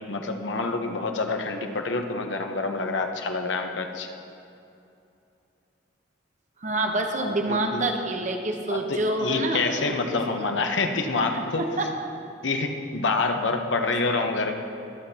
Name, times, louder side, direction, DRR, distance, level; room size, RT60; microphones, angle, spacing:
voice 1, 0.1-4.1 7.2-7.9 8.7-11.6 12.4-14.5, left 3 dB, 85° left, 5 dB, 1.0 m, -27 dB
voice 2, 6.6-10.5 11.3-11.9 13.8-14.0, right 2 dB, 40° right, 3 dB, 1.0 m, -28 dB
22.5 x 8.0 x 2.9 m, 2.7 s
head